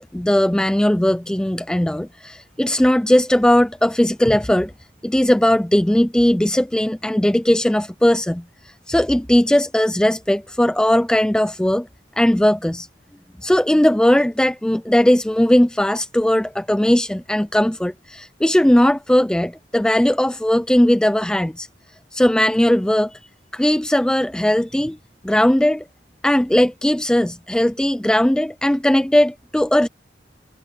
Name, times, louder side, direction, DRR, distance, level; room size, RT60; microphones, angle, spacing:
voice 1, 0.1-4.7 5.0-11.9 12.2-12.9 13.4-21.7 22.1-23.2 23.5-25.0 25.2-25.8 26.2-29.9, left 1 dB, 5° left, 0.3 m, -18 dB
head